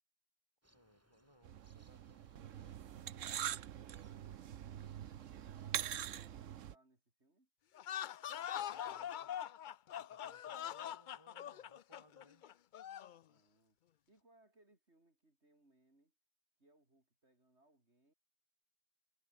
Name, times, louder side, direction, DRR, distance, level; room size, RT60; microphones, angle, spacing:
voice 1, 0.6-3.4 5.5-5.8 8.3-9.3 9.9-12.4, equal, 20° left, 7.7 m, -69 dB
sound 1, 0.6-6.2, equal, 10° right, 6.4 m, -72 dB
sound 2, 1.4-6.7, right 10 dB, 70° right, 1.2 m, -44 dB
voice 2, 5.7-7.5 13.3-13.8 14.1-16.1 16.6-18.1, right 2 dB, 55° right, 5.5 m, -71 dB
sound 3, 7.7-13.2, left 10 dB, 60° left, 0.5 m, -43 dB
omnidirectional pair, 1.4 m